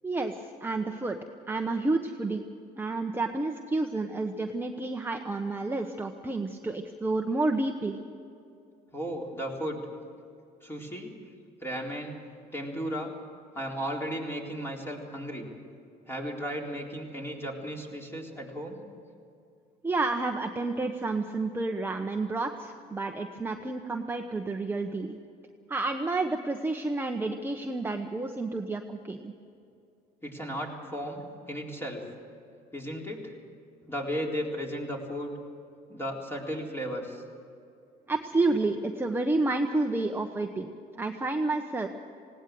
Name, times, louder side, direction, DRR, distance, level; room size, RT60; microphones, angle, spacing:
voice 1, 0.0-1.2 1.5-2.4 2.8-8.0 19.8-25.2 25.7-29.3 38.1-40.7 41.0-41.9, right 2 dB, 10° right, 3 dB, 1.0 m, -30 dB
voice 2, 8.9-9.8 10.6-11.1 11.6-12.2 12.5-13.1 13.5-15.5 16.1-18.8 30.2-32.0 32.7-33.2 33.9-35.3 35.9-37.2, equal, 15° left, 0 dB, 4.0 m, -35 dB
19.5 x 17.5 x 7.7 m, 2.5 s
cardioid pair, 110°, 17 cm